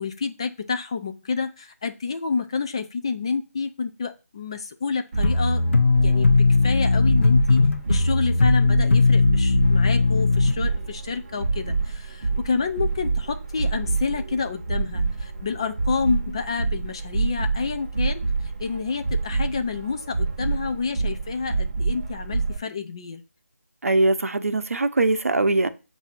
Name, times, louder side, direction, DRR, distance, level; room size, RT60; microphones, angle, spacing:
voice 1, 0.0-23.2, left 5 dB, 20° left, 0.3 m, -29 dB
sound 1, 5.1-22.6, right 3 dB, 30° right, 0.8 m, -27 dB
sound 2, 5.2-10.5, left 3 dB, 50° left, 0.8 m, -18 dB
voice 2, 23.8-25.7, right 2 dB, 65° right, 0.7 m, -21 dB
7.1 x 2.7 x 5.7 m
figure-of-eight pair, 160°, 8 cm